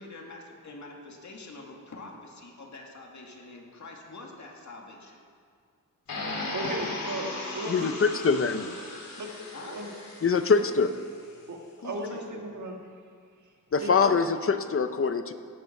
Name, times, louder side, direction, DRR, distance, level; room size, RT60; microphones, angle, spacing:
voice 1, 0.0-5.2 9.5-9.8 11.8-12.4, left 2 dB, 55° left, -1 dB, 2.3 m, -45 dB
sound 1, 6.1-11.1, left 2 dB, 80° left, 2.6 m, -37 dB
voice 2, 6.5-7.3 7.5-8.2 9.2-9.3 9.6-9.9 11.5-12.8 13.4-13.5 13.8-14.1, right 1 dB, 55° right, 1 dB, 2.0 m, -35 dB
voice 3, 7.7-8.8 10.2-10.9 13.7-15.3, left 5 dB, 40° left, 9 dB, 0.7 m, -24 dB
17.5 x 8.1 x 5.9 m, 2.1 s
wide cardioid pair, 125°, 34 cm